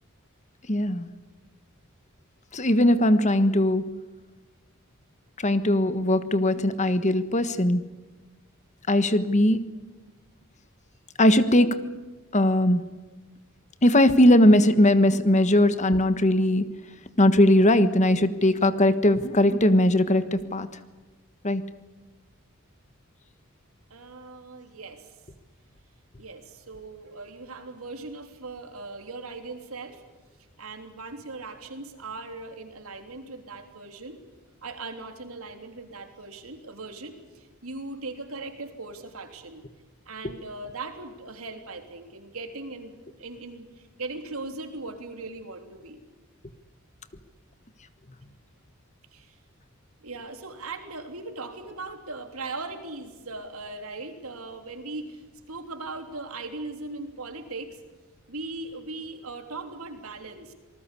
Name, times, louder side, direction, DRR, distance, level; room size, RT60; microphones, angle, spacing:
voice 1, 0.7-1.1 2.5-3.9 5.4-7.8 8.9-9.6 11.2-11.8 12.3-12.8 13.8-16.6 17.2-20.7 21.4-21.6, left 1 dB, 35° left, 12 dB, 1.4 m, -20 dB
voice 2, 23.9-25.2 26.2-30.0 30.6-34.2 34.6-39.6 40.1-46.0 49.1-49.4 50.0-57.8 58.3-60.5, right 3 dB, 85° right, 6 dB, 3.4 m, -39 dB
27.5 x 19.5 x 8.5 m, 1.2 s
head